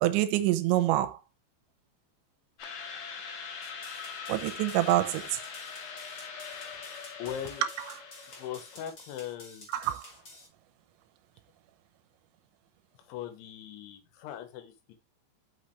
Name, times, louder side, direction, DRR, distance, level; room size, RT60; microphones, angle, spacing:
voice 1, 0.0-1.2 4.3-5.4 9.8-10.1, right 14 dB, 85° right, 3.0 m, -26 dB
sound 1, 2.6-8.9, left 6 dB, 60° left, 3.3 m, -42 dB
sound 2, 3.6-10.5, left 2 dB, 30° left, 3.0 m, -51 dB
voice 2, 7.2-7.7 8.3-9.7 13.0-14.9, left 10 dB, 80° left, 3.6 m, -40 dB
6.6 x 6.3 x 3.2 m
omnidirectional pair, 5.3 m